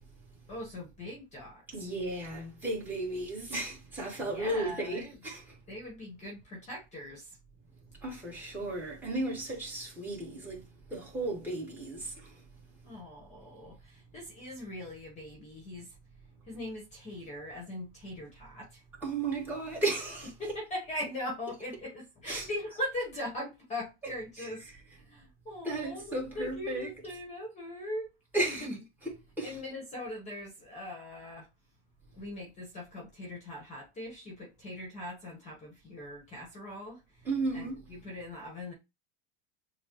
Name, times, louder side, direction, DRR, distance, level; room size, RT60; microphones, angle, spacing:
voice 1, 0.5-1.8 4.2-5.1 5.7-7.4 12.8-15.9 16.5-18.8 20.4-24.7 24.9-28.8 29.4-31.5 32.1-37.3 37.5-38.7, left 1 dB, 20° left, 1.3 m, -41 dB
voice 2, 1.7-5.6 8.0-12.4 19.0-20.3 22.2-22.5 24.0-24.1 24.4-24.8 25.6-26.9 28.3-28.7 29.4-29.6 37.2-37.8, right 2 dB, 5° right, 1.6 m, -34 dB
7.1 x 2.4 x 3.0 m
supercardioid pair, 155°, 34 cm